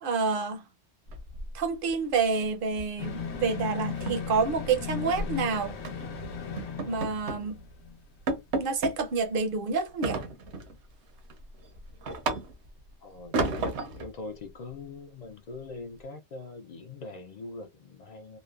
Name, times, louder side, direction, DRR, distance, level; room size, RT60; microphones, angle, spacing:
voice 1, 0.0-0.6 1.5-5.8 6.9-7.6 8.6-10.2, right 4 dB, 60° right, 0.7 m, -28 dB
sound 1, 1.1-1.9 2.2-2.4 2.8-3.0 3.3-3.4 3.8-5.3 5.8-6.1 6.6-7.5 7.8-7.9 8.3-9.0 10.0-10.8 11.2-12.8 13.3-14.1, right 3 dB, 80° right, 1.0 m, -32 dB
sound 2, 3.0-8.0 8.3-8.4, left 6 dB, 75° left, 0.9 m, -37 dB
voice 2, 13.0-13.4 13.9-18.4, left 3 dB, 60° left, 0.4 m, -42 dB
3.0 x 2.0 x 2.3 m
omnidirectional pair, 1.2 m